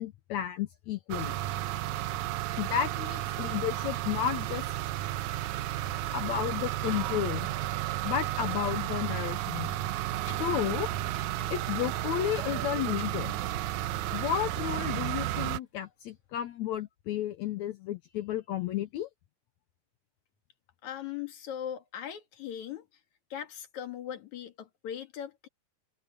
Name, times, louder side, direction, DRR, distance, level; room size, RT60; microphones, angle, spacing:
voice 1, 0.0-1.4 2.6-4.7 6.1-7.5 8.0-9.7 10.4-10.9 11.5-13.3 14.1-19.1, left 11 dB, 75° left, 1.7 m, -32 dB
sound 1, 1.1-15.6, right 14 dB, 80° right, 1.8 m, -33 dB
sound 2, 5.4-16.2 16.5-16.6, left 3 dB, 45° left, 5.1 m, -54 dB
voice 2, 20.8-22.9 23.3-25.5, left 10 dB, 60° left, 3.1 m, -39 dB
omnidirectional pair, 4.1 m